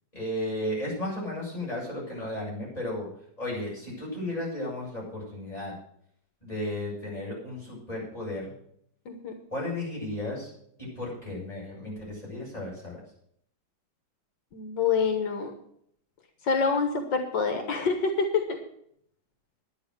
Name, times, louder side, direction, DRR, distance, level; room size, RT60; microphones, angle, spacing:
voice 1, 0.1-3.1 3.4-5.7 6.4-8.5 9.5-10.5 10.8-13.0, left 1 dB, 20° left, -5 dB, 7.4 m, -34 dB
voice 2, 9.1-9.4 14.5-15.5 16.4-18.6, left 5 dB, 85° left, 5 dB, 2.1 m, -26 dB
10.5 x 10.0 x 6.5 m, 0.68 s
omnidirectional pair, 1.9 m